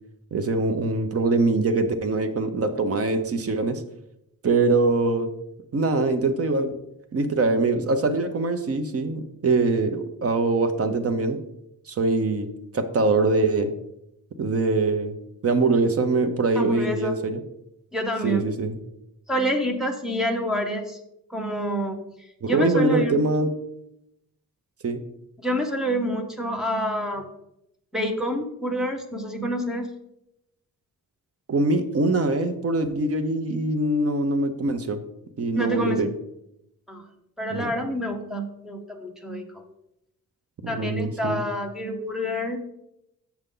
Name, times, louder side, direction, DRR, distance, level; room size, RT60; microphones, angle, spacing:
voice 1, 0.3-3.8 4.4-5.3 5.7-6.7 7.1-11.4 11.9-13.7 14.4-15.1 15.4-17.4 18.2-18.8 22.4-23.5 24.8-25.0 31.5-35.0 35.4-36.1 37.5-37.7 40.6-41.4, right 3 dB, 40° right, 8 dB, 0.7 m, -23 dB
voice 2, 16.6-17.1 17.9-18.4 19.3-21.0 21.3-22.0 22.4-23.2 25.4-27.3 27.9-29.9 35.5-36.1 36.9-37.0 37.4-39.6 40.7-42.6, equal, ahead, 1 dB, 0.8 m, -27 dB
7.2 x 6.7 x 3.8 m, 0.82 s
wide cardioid pair, 175°, 35 cm